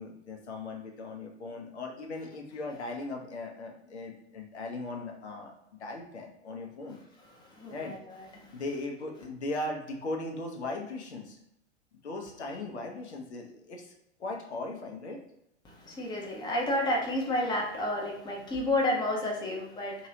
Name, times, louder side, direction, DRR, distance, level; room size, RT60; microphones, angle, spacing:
voice 1, 0.0-5.5 5.8-7.0 7.7-8.0 8.5-11.4 12.0-13.9 14.2-15.2, left 2 dB, 70° left, 2 dB, 0.9 m, -38 dB
voice 2, 7.2-8.6 12.5-12.6 15.6-20.1, left 1 dB, 10° left, -1 dB, 0.9 m, -31 dB
3.7 x 3.0 x 2.7 m, 0.81 s
figure-of-eight pair, 95°, 35 cm